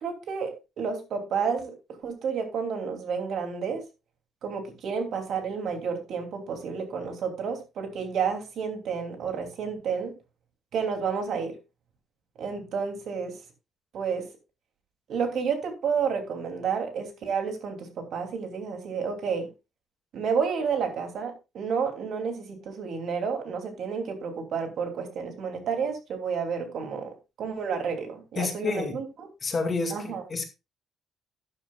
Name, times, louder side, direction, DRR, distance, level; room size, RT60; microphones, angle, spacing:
voice 1, 0.0-1.7 2.0-3.8 4.4-10.1 10.7-11.6 12.4-13.4 13.9-14.3 15.1-19.5 20.1-27.1 27.4-29.1 29.9-30.2, right 6 dB, 60° right, 2.9 m, -30 dB
voice 2, 28.4-29.0 29.4-30.5, left 4 dB, 30° left, 2.2 m, -29 dB
12.5 x 9.8 x 2.4 m
cardioid pair, 145°, 0 cm